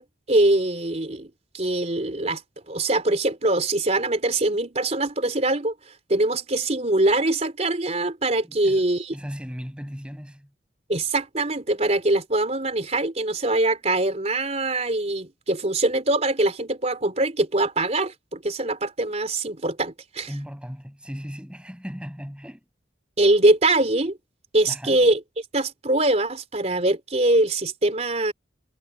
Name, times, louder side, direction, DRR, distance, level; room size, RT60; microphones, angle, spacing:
voice 1, 0.0-2.4 2.7-5.7 6.1-9.2 10.9-20.3 23.2-24.2 24.5-25.2 25.5-28.3, right 2 dB, 35° right, 3.5 m, -23 dB
voice 2, 8.4-8.8 9.1-10.5 20.3-22.6 24.7-25.0, equal, 5° right, 7.2 m, -37 dB
head